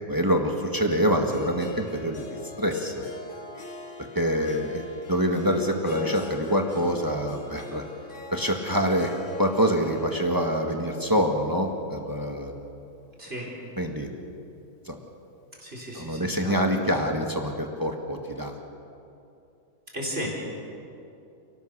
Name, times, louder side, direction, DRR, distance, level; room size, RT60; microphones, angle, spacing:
voice 1, 0.1-3.0 4.1-7.8 8.3-9.1 9.4-12.5 13.8-14.1 14.9-15.0 16.0-18.5, equal, 15° right, 3 dB, 1.7 m, -26 dB
Harp, 1.3-13.4, left 4 dB, 55° left, 2.2 m, -41 dB
voice 2, 13.2-13.5 15.6-16.6 19.9-20.3, equal, 40° right, -3 dB, 4.6 m, -34 dB
29.5 x 18.5 x 6.8 m, 2.6 s
omnidirectional pair, 1.6 m